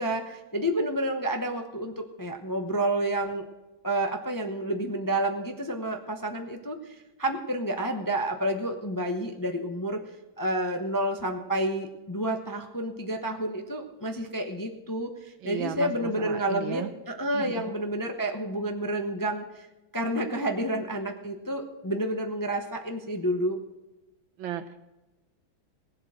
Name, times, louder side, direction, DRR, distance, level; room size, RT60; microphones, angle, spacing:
voice 1, 0.0-3.4 3.8-10.0 10.4-19.7 19.9-23.6, right 1 dB, 25° left, 4 dB, 0.4 m, -30 dB
voice 2, 15.4-16.9 17.3-17.6 24.4-24.8, right 10 dB, 75° right, 7 dB, 1.7 m, -35 dB
18.5 x 7.8 x 6.3 m, 1.1 s
omnidirectional pair, 2.2 m